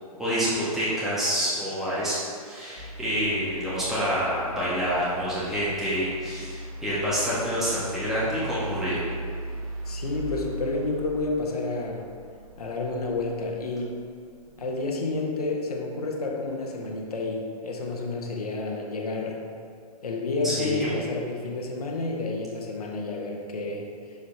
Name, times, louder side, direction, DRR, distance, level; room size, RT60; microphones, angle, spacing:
voice 1, 0.2-9.0 20.4-20.9, equal, ahead, -11 dB, 1.7 m, -27 dB
sound 1, 2.8-15.0 16.3-16.4, right 1 dB, 65° right, 1.5 m, -39 dB
voice 2, 9.8-12.0 12.6-13.9 14.6-19.4 20.0-23.8, left 3 dB, 70° left, 0 dB, 1.3 m, -30 dB
8.1 x 6.8 x 2.8 m, 2.2 s
figure-of-eight pair, 120°, 20 cm